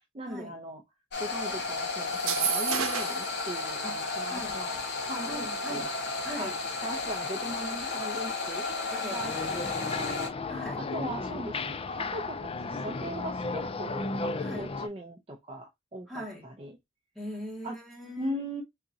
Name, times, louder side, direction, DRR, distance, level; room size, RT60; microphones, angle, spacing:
voice 1, 0.1-0.8 1.2-5.9 6.4-6.5 6.8-10.3 10.9-16.7 17.6-17.7 18.2-18.6, right 1 dB, 30° right, 0.6 m, -39 dB
sound 1, 1.1-10.3, left 3 dB, 55° left, 1.7 m, -33 dB
sound 2, 2.1-3.3, right 8 dB, 80° right, 0.8 m, -30 dB
voice 2, 4.3-4.6 5.3-5.9 6.2-6.6 8.9-9.3 10.5-10.8 14.4-14.7 16.1-16.5 17.2-18.4, left 1 dB, ahead, 1.9 m, -40 dB
sound 3, 9.2-14.9, left 3 dB, 25° left, 0.4 m, -34 dB
3.9 x 3.6 x 2.7 m
head